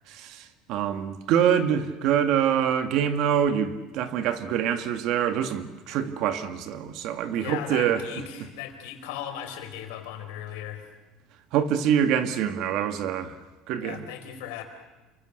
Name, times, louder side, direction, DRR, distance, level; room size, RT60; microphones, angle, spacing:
voice 1, 0.1-8.0 11.5-13.3 13.7-14.0, right 9 dB, 55° right, 8 dB, 2.1 m, -25 dB
voice 2, 7.3-10.8 13.8-14.6, left 9 dB, 90° left, 5 dB, 4.8 m, -37 dB
29.5 x 24.0 x 6.7 m, 1.2 s
cardioid pair, 155°, 0 cm